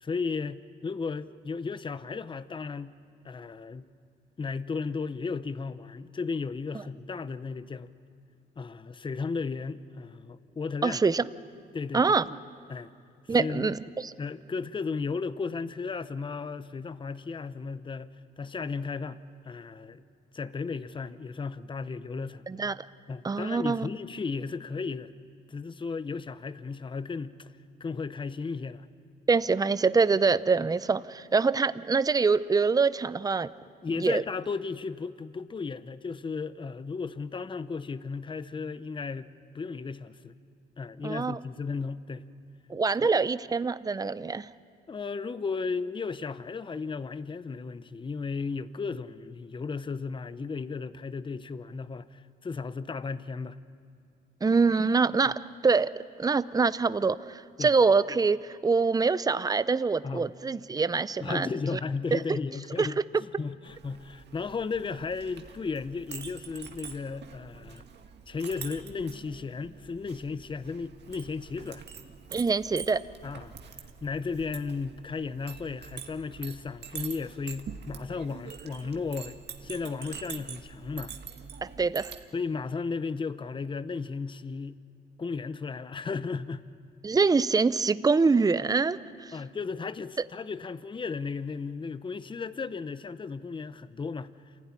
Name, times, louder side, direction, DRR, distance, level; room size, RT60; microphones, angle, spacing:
voice 1, 0.0-2.9 3.2-3.9 4.4-7.9 8.6-11.0 11.7-12.2 12.7-12.9 13.4-13.7 14.2-18.1 18.4-19.2 19.4-20.0 20.3-22.5 23.1-25.1 25.5-27.5 27.8-28.8 33.8-39.3 39.5-40.4 40.8-42.2 43.0-43.1 44.9-53.6 57.6-57.7 60.0-60.3 61.2-63.0 63.4-67.8 68.3-71.8 73.2-73.5 74.0-81.1 82.3-84.8 85.2-86.6 89.3-94.3, left 4 dB, 25° left, 14 dB, 0.8 m, -35 dB
voice 2, 10.8-11.2 11.9-12.2 13.3-14.1 22.5-22.9 23.2-23.9 29.3-33.5 34.0-34.2 41.0-41.4 42.7-44.5 54.4-55.9 56.2-61.8 62.1-62.4 62.8-62.9 72.3-73.0 81.6-82.1 87.0-89.3, right 4 dB, 20° right, 15 dB, 0.6 m, -25 dB
Chink clink, 63.6-82.2, right 7 dB, 60° right, 1.9 m, -45 dB
27.5 x 15.5 x 9.8 m, 2.4 s
cardioid pair, 90°, 20 cm